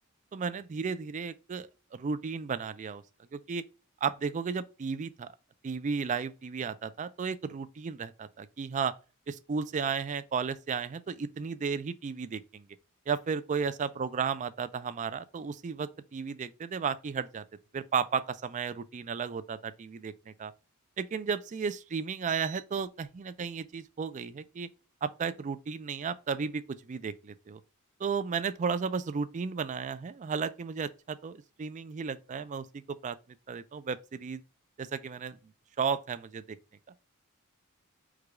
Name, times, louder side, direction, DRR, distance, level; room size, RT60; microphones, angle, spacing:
voice 1, 0.3-3.0 3.3-3.6 4.0-5.3 5.6-8.9 9.3-12.7 13.1-17.4 17.7-20.5 21.0-24.7 25.0-27.6 28.0-33.2 33.5-34.4 34.8-35.4 35.8-36.6, right 6 dB, 35° right, 0.3 m, -34 dB
4.8 x 2.3 x 4.8 m
head